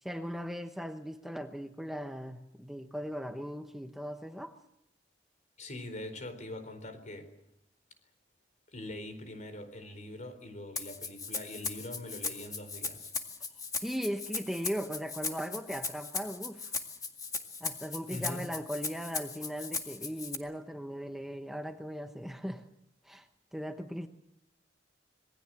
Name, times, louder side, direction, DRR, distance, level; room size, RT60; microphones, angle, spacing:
voice 1, 0.0-4.5 13.8-16.7 17.6-22.6 23.0-24.1, equal, ahead, 6 dB, 1.0 m, -38 dB
voice 2, 5.6-7.3 8.7-13.1 18.1-18.4, left 1 dB, 45° left, 10 dB, 4.3 m, -43 dB
Rattle (instrument), 10.8-20.4, left 4 dB, 20° left, 1.9 m, -38 dB
26.5 x 20.0 x 7.7 m, 0.83 s
head